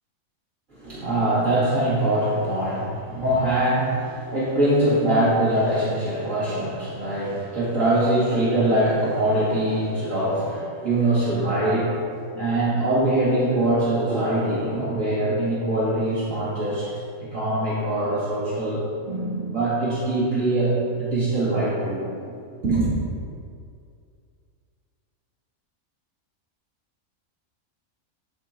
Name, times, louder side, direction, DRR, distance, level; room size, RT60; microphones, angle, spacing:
voice 1, 0.7-12.0 12.3-16.9 17.2-22.1 22.6-22.9, right 1 dB, 60° right, -11 dB, 2.5 m, -23 dB
10.5 x 3.8 x 4.3 m, 2.4 s
omnidirectional pair, 1.5 m